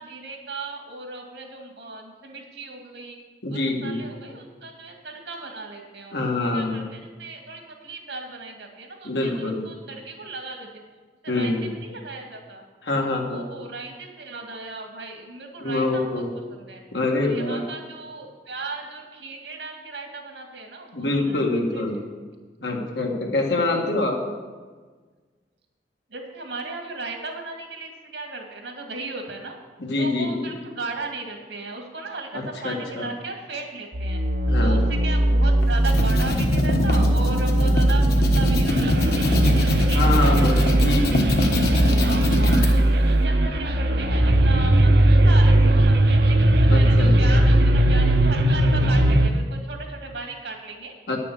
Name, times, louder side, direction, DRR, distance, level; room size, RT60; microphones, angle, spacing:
voice 1, 0.0-3.2 3.5-10.8 11.2-12.6 13.3-16.2 16.5-16.8 17.2-22.0 26.1-29.6 30.0-34.2 34.6-40.9 41.9-50.9, right 3 dB, 85° right, 2 dB, 2.1 m, -36 dB
voice 2, 3.4-4.0 6.1-6.8 9.0-9.6 11.3-11.7 12.8-13.4 15.6-16.3 16.9-17.6 20.9-21.9 22.6-24.2 29.8-30.5 32.3-33.1 34.5-34.8 39.9-41.5 46.7-47.4 51.1-51.2, left 2 dB, 80° left, 1 dB, 1.8 m, -25 dB
sound 1, 33.9-49.3, right 1 dB, 65° right, 0.7 m, -19 dB
sound 2, 35.6-42.7, left 1 dB, 60° left, 1.3 m, -23 dB
10.0 x 6.8 x 6.9 m, 1.4 s
head